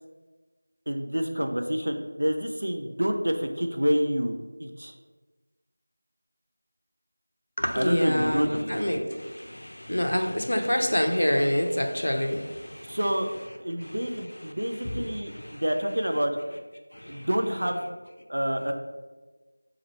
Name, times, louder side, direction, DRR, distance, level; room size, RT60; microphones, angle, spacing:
voice 1, 0.9-4.9 7.8-8.8 12.9-13.3 13.6-16.3 17.1-17.9 18.3-18.7, equal, 70° right, 4 dB, 0.4 m, -28 dB
voice 2, 7.6-13.0 13.8-14.0 14.8-15.6 16.9-17.3, equal, 85° left, 4 dB, 0.5 m, -27 dB
3.0 x 2.3 x 4.2 m, 1.3 s
figure-of-eight pair, 180°, 0 cm